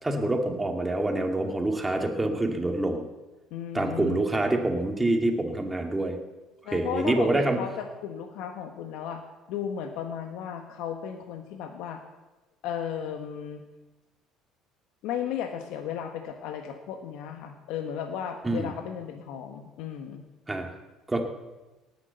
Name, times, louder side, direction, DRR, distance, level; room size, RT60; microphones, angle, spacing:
voice 1, 0.0-3.0 3.7-6.2 6.7-7.6 18.4-18.7 20.5-20.7 21.1-21.2, right 2 dB, 10° right, 3 dB, 2.2 m, -26 dB
voice 2, 3.5-4.2 6.6-9.2 9.5-12.0 12.6-13.6 15.0-20.2, left 8 dB, 75° left, 5 dB, 1.4 m, -35 dB
18.0 x 10.0 x 8.1 m, 1.2 s
cardioid pair, 120°, 0 cm